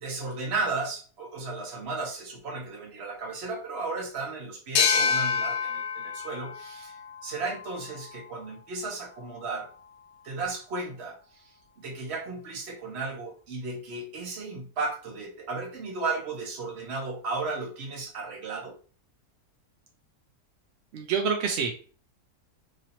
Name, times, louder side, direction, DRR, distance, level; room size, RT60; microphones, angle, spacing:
voice 1, 0.0-6.9 7.2-9.7 10.2-11.2 11.8-18.7, right 3 dB, 50° right, 2 dB, 0.9 m, -34 dB
sound 1, 4.8-8.1, left 6 dB, 80° left, 1.1 m, -28 dB
voice 2, 20.9-21.7, right 6 dB, 75° right, 3 dB, 0.6 m, -27 dB
3.0 x 2.7 x 2.8 m, 0.39 s
omnidirectional pair, 1.7 m